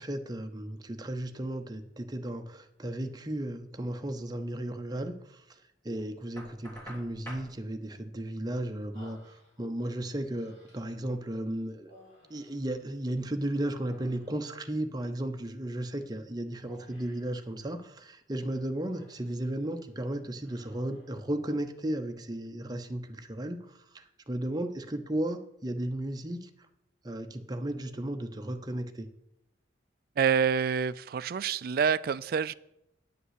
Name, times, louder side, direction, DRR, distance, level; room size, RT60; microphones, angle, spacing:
voice 1, 0.0-5.6 5.8-11.9 12.3-26.5 27.0-29.1, right 1 dB, 20° right, 6 dB, 0.7 m, -35 dB
Knock, 6.4-7.5, equal, 10° left, 2.0 m, -46 dB
Human voice, 8.9-9.8 10.3-11.0 11.8-13.3 13.6-14.7 16.7-17.3 18.4-19.4 19.7-20.0 20.4-21.2, left 1 dB, 40° left, 4.0 m, -57 dB
voice 2, 30.2-32.5, right 6 dB, 50° right, 16 dB, 0.3 m, -27 dB
10.0 x 5.4 x 8.2 m, 0.84 s
head